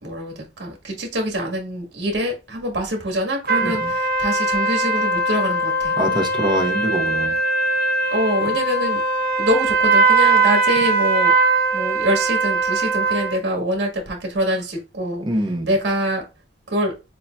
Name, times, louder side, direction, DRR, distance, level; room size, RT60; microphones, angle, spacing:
voice 1, 0.0-6.0 8.1-9.0 9.4-11.3 11.7-15.2 15.6-16.2 16.7-16.9, equal, 80° right, 1.5 m, -24 dB
sound 1, 3.5-13.4, right 3 dB, 55° right, 0.8 m, -20 dB
voice 2, 3.6-3.9 6.0-7.4 15.2-15.7, right 1 dB, 25° right, 0.8 m, -24 dB
6.7 x 2.6 x 2.2 m
head